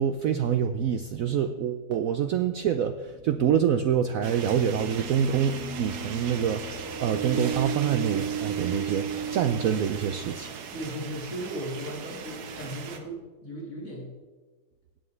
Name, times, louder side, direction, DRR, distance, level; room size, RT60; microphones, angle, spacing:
voice 1, 0.0-10.5, right 8 dB, 85° right, 9 dB, 0.7 m, -26 dB
sound 1, 3.9-10.8, right 6 dB, 20° right, 0.7 m, -35 dB
sound 2, 4.2-13.0, right 6 dB, 60° right, 1.4 m, -39 dB
voice 2, 10.7-14.1, right 1 dB, 45° left, -4 dB, 3.6 m, -36 dB
16.5 x 9.4 x 3.2 m, 1.3 s
omnidirectional pair, 2.0 m